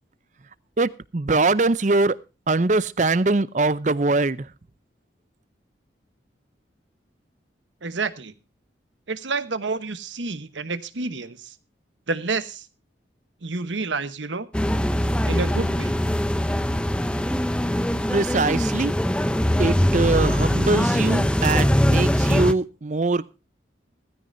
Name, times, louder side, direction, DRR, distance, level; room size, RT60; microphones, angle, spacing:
voice 1, 0.8-2.2 2.5-4.5 18.1-18.9 19.6-23.4, right 3 dB, 40° right, 0.6 m, -22 dB
voice 2, 7.8-8.3 9.1-11.5 12.1-12.7 13.4-14.5 15.3-15.9, right 3 dB, 85° right, 1.1 m, -29 dB
sound 1, 14.5-22.5, equal, 5° left, 0.6 m, -22 dB
17.0 x 15.5 x 2.6 m
head